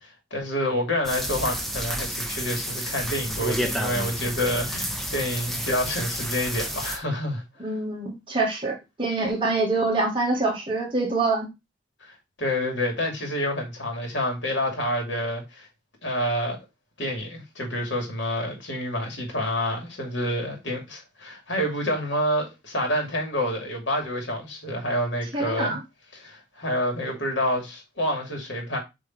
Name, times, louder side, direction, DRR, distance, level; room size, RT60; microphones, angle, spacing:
voice 1, 0.0-7.4 12.0-15.7 16.0-16.6 17.0-25.8 26.1-28.8, equal, 85° left, 2.6 m, -28 dB
sound 1, 1.0-7.0, equal, ahead, 0.8 m, -30 dB
voice 2, 7.6-11.5 25.3-25.8, right 3 dB, 30° right, 2.1 m, -25 dB
6.7 x 3.3 x 4.3 m
head